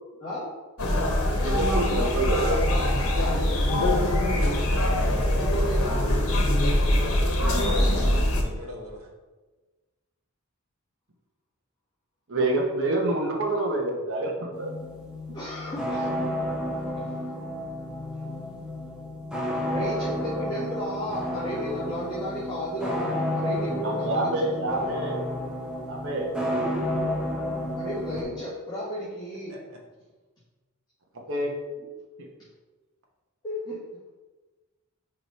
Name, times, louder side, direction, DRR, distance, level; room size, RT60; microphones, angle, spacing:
sound 1, 0.8-8.4, left 1 dB, 80° left, 1.1 m, -23 dB
voice 1, 1.4-2.6 7.4-7.6 12.3-14.3 14.6-14.7 23.8-25.2 25.9-26.4 31.3-31.5, right 2 dB, 60° right, -1 dB, 1.0 m, -27 dB
voice 2, 3.2-4.8 5.3-6.5 15.3-16.2 19.7-25.2 26.4-27.0 27.8-29.5 33.4-33.8, equal, 20° left, -11 dB, 1.6 m, -34 dB
voice 3, 6.9-9.1 29.5-29.8, equal, 80° right, 0 dB, 1.3 m, -38 dB
sound 2, 14.5-28.2, equal, 5° right, 0.8 m, -31 dB
5.0 x 4.8 x 4.1 m, 1.2 s
head